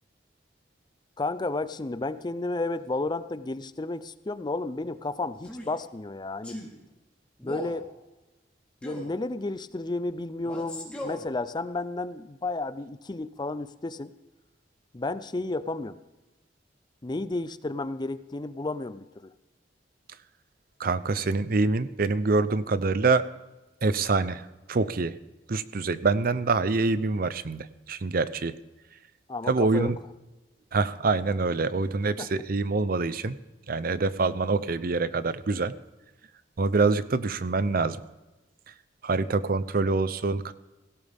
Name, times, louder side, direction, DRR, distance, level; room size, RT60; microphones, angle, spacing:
voice 1, 1.2-6.7 7.4-7.9 8.8-14.1 14.9-16.0 17.0-19.3 29.3-29.9 32.2-32.3, left 2 dB, 25° left, 14 dB, 0.5 m, -32 dB
Male speech man speaking, 5.4-5.8 6.4-6.7 7.4-7.8 8.8-9.1 10.4-11.3, equal, 5° left, 3.4 m, -38 dB
voice 2, 20.8-23.2 23.8-24.4 24.7-25.1 25.5-28.5 29.5-30.0 30.7-33.4 33.7-35.7 36.6-38.0 39.0-40.5, right 3 dB, 55° right, 14 dB, 0.7 m, -25 dB
17.5 x 17.0 x 3.5 m, 1.1 s
head